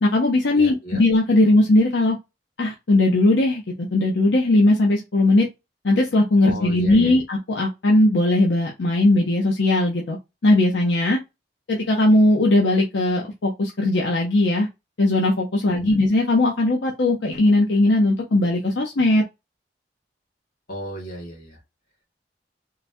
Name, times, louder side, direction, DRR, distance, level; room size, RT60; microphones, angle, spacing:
voice 1, 0.0-2.2 2.6-3.6 3.9-5.5 5.8-10.2 10.4-11.2 11.7-14.7 15.0-19.2, left 2 dB, 85° left, 0.7 m, -19 dB
voice 2, 0.6-1.0 6.4-7.2 15.8-16.0 20.7-21.6, equal, 55° left, 1.9 m, -35 dB
3.8 x 2.1 x 2.7 m
head